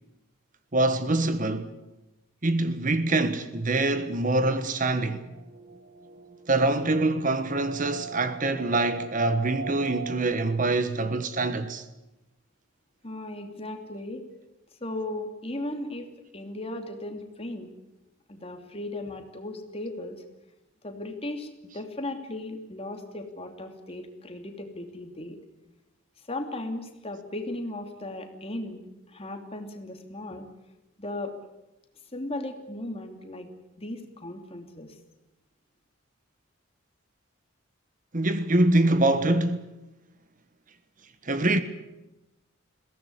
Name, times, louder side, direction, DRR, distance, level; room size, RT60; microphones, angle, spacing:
voice 1, 0.7-1.7 2.4-5.2 6.5-11.8 38.1-39.6 41.2-41.6, right 2 dB, 40° right, 1.3 m, -24 dB
sound 1, 5.1-10.3, right 5 dB, 25° right, 1.8 m, -41 dB
voice 2, 13.0-14.2 14.8-17.7 18.3-20.2 20.8-25.4 26.3-30.4 31.0-31.3 32.1-33.5 33.8-35.0, left 1 dB, 30° left, 2.8 m, -36 dB
21.5 x 17.5 x 9.8 m
head